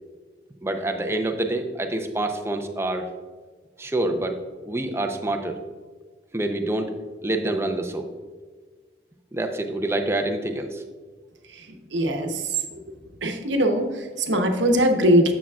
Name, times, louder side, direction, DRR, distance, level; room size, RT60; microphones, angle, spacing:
voice 1, 0.6-3.1 3.8-4.4 4.6-5.6 6.3-6.9 7.2-8.1 9.3-10.8, right 2 dB, 15° right, 4 dB, 0.6 m, -26 dB
voice 2, 11.4-15.3, right 1 dB, 90° right, 4 dB, 0.9 m, -22 dB
9.6 x 7.1 x 2.4 m, 1.4 s
head